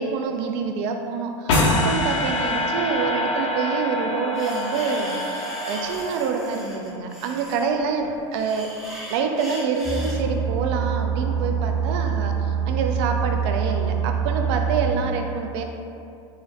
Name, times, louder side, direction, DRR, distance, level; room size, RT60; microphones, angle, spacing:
voice 1, 0.0-8.7 9.1-15.6, right 5 dB, 65° right, 4 dB, 0.4 m, -27 dB
sound 1, 1.5-6.7, left 1 dB, 75° left, 0.6 m, -25 dB
sound 2, 4.3-10.2, equal, ahead, 0.6 m, -39 dB
sound 3, 9.8-14.9, right 7 dB, 35° right, 0.8 m, -25 dB
3.7 x 2.0 x 2.6 m, 2.5 s
hypercardioid pair, 95°, 16 cm